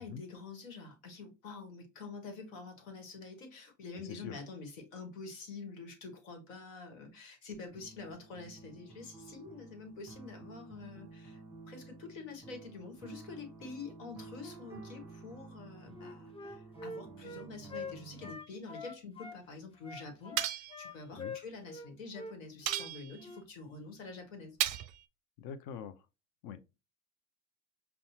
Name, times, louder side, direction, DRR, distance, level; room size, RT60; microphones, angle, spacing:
voice 1, 0.0-11.4 11.7-24.6, left 4 dB, 80° left, 1.3 m, -47 dB
voice 2, 4.0-4.4 21.2-21.3 25.4-26.0 26.4-26.8, left 7 dB, 55° left, 0.7 m, -44 dB
sound 1, 7.7-18.3, right 3 dB, 5° right, 0.9 m, -52 dB
Wind instrument woodwind instrument, 15.9-19.4 19.8-21.9 22.1-22.3 22.7-22.9 23.2-23.4, left 3 dB, 15° left, 0.4 m, -45 dB
sound 2, 20.4-20.8 22.7-23.3 24.6-25.0, right 13 dB, 45° right, 0.5 m, -34 dB
5.4 x 2.3 x 2.7 m
hypercardioid pair, 75°, 39 cm